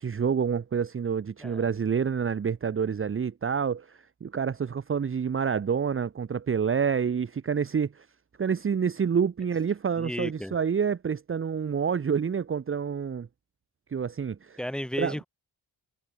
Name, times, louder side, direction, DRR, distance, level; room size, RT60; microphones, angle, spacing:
voice 1, 0.0-8.1 8.4-13.3 13.9-14.6 15.0-15.1, right 6 dB, 30° right, 1.4 m, -28 dB
voice 2, 10.0-10.6 14.6-15.3, equal, ahead, 3.7 m, -33 dB
wide cardioid pair, 170°, 39 cm